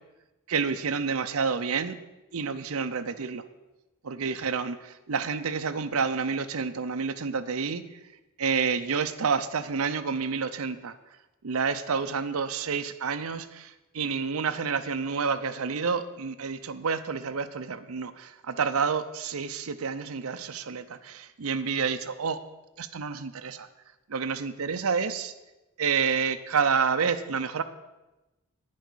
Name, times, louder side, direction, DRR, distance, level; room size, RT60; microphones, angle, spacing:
voice 1, 0.5-2.0 2.3-3.4 4.0-8.0 8.4-11.0 11.4-22.4 22.8-23.7 24.1-25.3 25.8-27.6, right 5 dB, 80° right, 9 dB, 0.7 m, -29 dB
10.5 x 9.4 x 6.2 m, 1.0 s
head